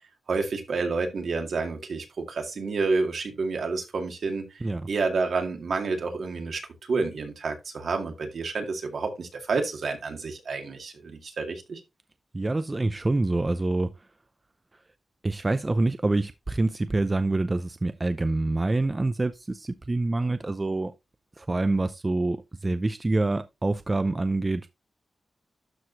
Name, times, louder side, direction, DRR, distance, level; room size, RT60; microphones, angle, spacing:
voice 1, 0.3-6.6 6.9-11.8, right 4 dB, 65° right, 2.2 m, -29 dB
voice 2, 12.3-13.9 15.2-20.9 21.4-24.7, right 2 dB, 25° right, 0.5 m, -26 dB
12.5 x 4.8 x 2.7 m
wide cardioid pair, 125°, 0 cm